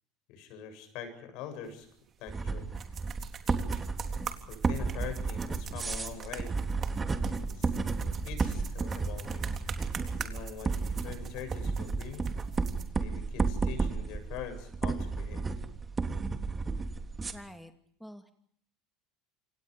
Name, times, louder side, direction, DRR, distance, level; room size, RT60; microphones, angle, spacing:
voice 1, 0.3-1.9 2.2-2.7 4.5-6.5 7.2-7.7 8.2-9.4 10.2-12.3 13.0-15.5, left 7 dB, 60° left, 9 dB, 7.8 m, -43 dB
sound 1, 1.6-12.8, right 8 dB, 40° right, 3.7 m, -45 dB
sound 2, 2.3-17.3, right 4 dB, 20° right, 3.3 m, -32 dB
voice 2, 17.3-17.7 18.0-18.3, equal, ahead, 6 dB, 2.5 m, -47 dB
28.5 x 28.0 x 5.1 m, 0.65 s
hypercardioid pair, 75°, 0 cm